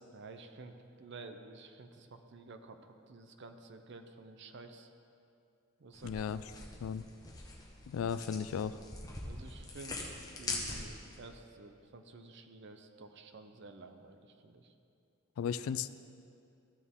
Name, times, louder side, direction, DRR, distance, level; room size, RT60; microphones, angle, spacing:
voice 1, 0.1-4.9 5.8-6.3 9.2-10.1 10.4-14.7, right 3 dB, 60° right, 7 dB, 0.6 m, -51 dB
sound 1, 5.9-11.2, left 2 dB, 20° left, 1.1 m, -43 dB
voice 2, 6.0-6.4 6.8-7.0 7.9-8.8 15.4-15.9, left 7 dB, 90° left, 14 dB, 0.3 m, -35 dB
14.0 x 6.3 x 3.7 m, 2.5 s
head